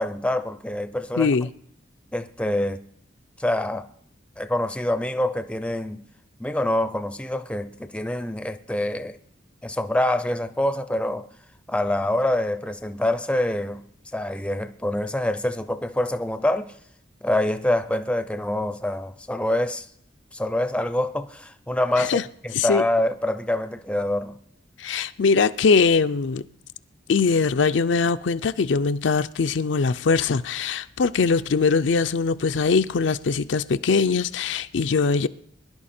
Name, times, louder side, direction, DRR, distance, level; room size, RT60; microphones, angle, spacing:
voice 1, 0.0-1.3 2.1-2.8 3.4-3.9 4.4-6.0 6.4-9.2 9.6-11.3 11.7-13.8 14.1-16.7 17.2-19.9 20.3-22.2 22.4-24.4, left 1 dB, 5° left, 0.5 m, -25 dB
voice 2, 1.2-1.5 22.0-22.2 22.5-22.8 24.8-26.4 27.1-35.3, left 5 dB, 70° left, 0.5 m, -21 dB
21.5 x 11.0 x 4.3 m
head